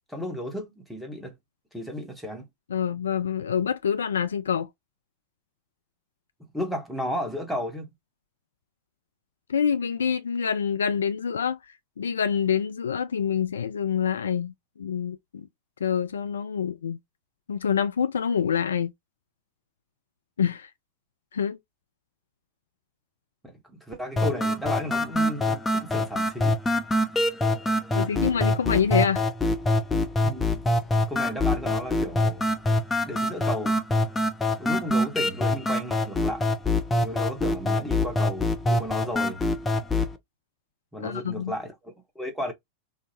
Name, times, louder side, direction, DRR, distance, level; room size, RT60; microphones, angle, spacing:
voice 1, 0.1-1.3 1.7-2.5 6.5-7.9 23.4-26.6 27.7-28.1 30.2-30.5 31.1-32.5 33.0-33.8 34.6-36.5 37.0-39.4 40.9-42.5, equal, 5° right, 0.9 m, -34 dB
voice 2, 2.7-4.7 9.5-11.6 12.0-14.5 14.8-15.5 15.8-17.0 17.5-18.9 20.4-20.7 21.3-21.6 27.9-29.2 41.0-41.5, left 7 dB, 70° left, 0.3 m, -26 dB
sound 1, 24.2-40.2, left 1 dB, 15° left, 0.6 m, -25 dB
3.8 x 2.0 x 2.8 m
figure-of-eight pair, 90°, 0 cm